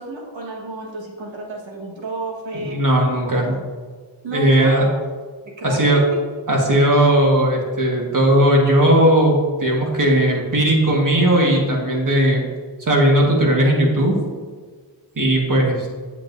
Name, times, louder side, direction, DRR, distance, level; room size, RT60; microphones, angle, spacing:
voice 1, 0.0-2.8 3.2-3.6 4.2-5.0 5.4-6.2, right 2 dB, 85° right, -1 dB, 1.6 m, -32 dB
voice 2, 2.5-3.5 4.3-4.8 5.6-6.0 6.5-12.4 12.8-14.2 15.2-15.9, right 1 dB, 45° right, -1 dB, 1.6 m, -17 dB
8.6 x 7.3 x 2.6 m, 1.5 s
wide cardioid pair, 90°, 44 cm